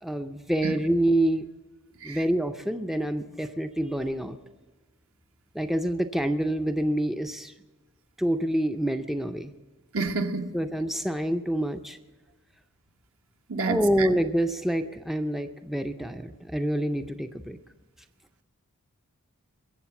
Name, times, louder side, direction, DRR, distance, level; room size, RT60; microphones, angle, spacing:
voice 1, 0.0-1.5 2.0-4.4 5.5-7.5 8.2-9.5 10.5-12.0 13.6-17.6, right 1 dB, ahead, 0.4 m, -27 dB
voice 2, 9.9-10.6 13.5-14.1, right 4 dB, 65° right, 1.1 m, -29 dB
22.0 x 7.7 x 7.0 m
head